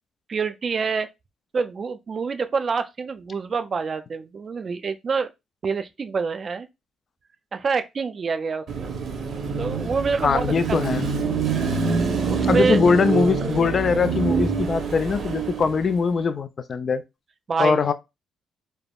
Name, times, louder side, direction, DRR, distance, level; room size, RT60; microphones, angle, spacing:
voice 1, 0.3-1.1 1.5-5.3 5.6-6.7 7.5-8.9 9.6-10.9 12.3-12.8 17.5-17.9, right 5 dB, 40° right, 0.3 m, -26 dB
Car passing by / Traffic noise roadway noise / Engine, 8.7-16.0, right 5 dB, 60° right, 0.8 m, -26 dB
voice 2, 10.2-11.1 12.5-17.0 17.6-17.9, left 5 dB, 45° left, 0.3 m, -21 dB
3.4 x 2.0 x 2.3 m
cardioid pair, 90°, 0 cm